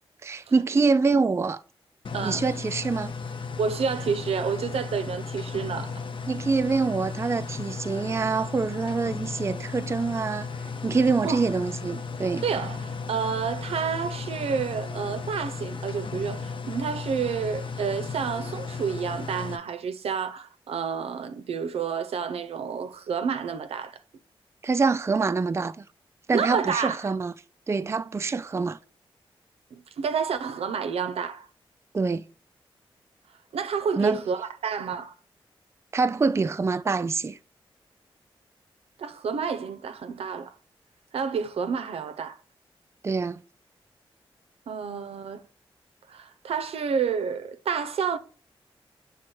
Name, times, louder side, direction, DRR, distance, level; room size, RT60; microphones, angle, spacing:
voice 1, 0.2-1.6 2.2-3.1 6.3-10.5 10.8-12.4 24.6-25.8 26.3-27.3 27.7-28.8 31.9-32.2 34.0-34.2 35.9-37.4 43.0-43.4, right 4 dB, 25° right, 0.3 m, -25 dB
sound 1, 2.0-19.6, left 5 dB, 55° left, 0.6 m, -35 dB
voice 2, 2.1-2.4 3.6-6.0 11.2-11.4 12.4-24.0 26.3-27.1 29.7-31.5 33.5-35.1 39.0-40.5 41.1-42.4 44.7-45.4 46.1-48.2, right 6 dB, 80° right, 0.5 m, -29 dB
6.3 x 3.5 x 4.5 m
cardioid pair, 50°, 10 cm